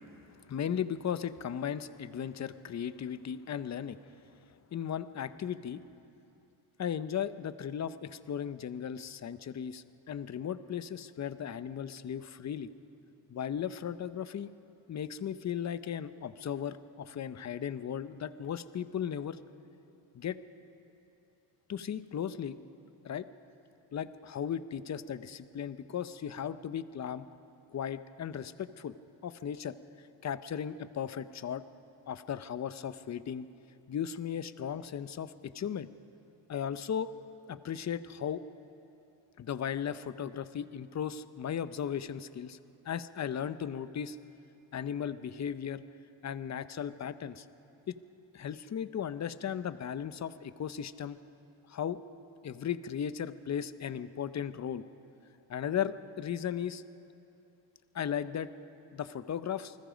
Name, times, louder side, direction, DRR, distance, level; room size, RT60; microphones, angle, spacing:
voice 1, 0.5-4.0 4.7-5.8 6.8-12.7 13.3-14.5 14.9-19.4 20.1-20.4 21.7-22.6 23.0-23.2 23.9-27.3 27.7-28.9 29.2-29.7 30.2-31.6 32.1-33.5 33.9-35.9 36.5-37.1 37.5-38.4 39.4-42.6 42.9-44.2 44.7-45.8 46.2-47.4 47.9-48.0 48.3-51.2 51.7-52.0 52.4-54.8 55.5-56.8 57.9-58.5 58.9-59.8, left 8 dB, 35° left, 13 dB, 0.8 m, -36 dB
28.5 x 20.0 x 5.2 m, 2.8 s
cardioid pair, 105°, 48 cm